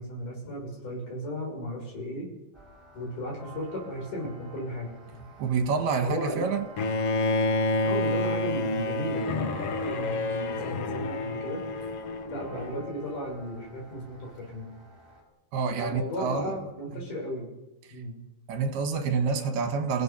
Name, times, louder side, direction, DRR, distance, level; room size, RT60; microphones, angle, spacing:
voice 1, 0.0-2.3 2.9-4.9 6.0-6.5 7.8-11.7 12.3-14.7 15.8-17.5 17.9-18.2, equal, 50° left, 7.8 m, -35 dB
sound 1, 2.5-15.2, right 1 dB, 5° right, 5.0 m, -51 dB
voice 2, 5.4-6.7 15.5-16.5 18.5-20.0, right 5 dB, 75° right, 3.5 m, -27 dB
Bowed string instrument, 6.8-12.8, left 2 dB, 80° left, 1.3 m, -29 dB
30.0 x 17.0 x 5.8 m
omnidirectional pair, 4.6 m